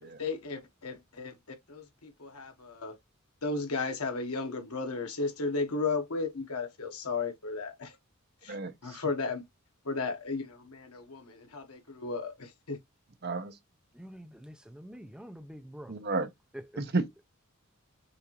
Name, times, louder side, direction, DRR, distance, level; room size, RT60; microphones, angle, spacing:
voice 1, 0.0-1.4 1.7-3.0 3.4-7.9 8.4-8.6 8.8-9.4 9.8-12.8, left 3 dB, 90° left, 1.1 m, -34 dB
voice 2, 8.5-9.0 13.2-13.5 15.9-16.3 16.8-17.2, right 3 dB, 50° right, 0.7 m, -32 dB
voice 3, 13.9-16.0 16.5-16.8, equal, 5° right, 0.5 m, -46 dB
6.8 x 2.5 x 2.9 m
head